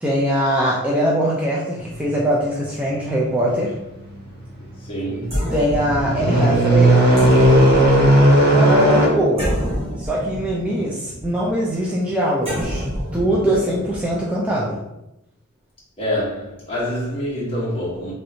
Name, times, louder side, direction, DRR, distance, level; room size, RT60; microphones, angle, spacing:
voice 1, 0.0-3.7 5.5-7.0 8.5-9.5 10.0-12.8 13.1-14.8, equal, 5° right, 0.3 m, -21 dB
sound 1, 1.8-2.3 2.8-3.0 3.5-3.7 4.0-4.5 4.9-5.0 5.5-9.1, right 1 dB, 50° right, 1.0 m, -15 dB
voice 2, 4.8-5.4 16.0-18.1, equal, 25° left, 1.1 m, -26 dB
sound 2, 5.2-14.2, equal, 25° right, 1.3 m, -29 dB
3.2 x 2.6 x 2.7 m
head